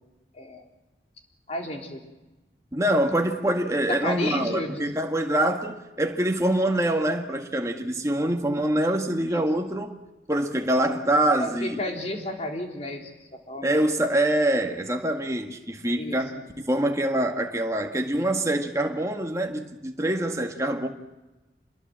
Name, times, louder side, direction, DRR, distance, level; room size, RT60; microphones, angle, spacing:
voice 1, 1.5-2.0 3.9-4.9 9.3-9.4 11.4-13.8 16.0-16.4, left 1 dB, 35° left, 3.7 m, -32 dB
voice 2, 2.7-9.9 10.3-11.8 13.6-20.9, right 1 dB, 15° right, 1.8 m, -25 dB
27.0 x 21.5 x 7.7 m
head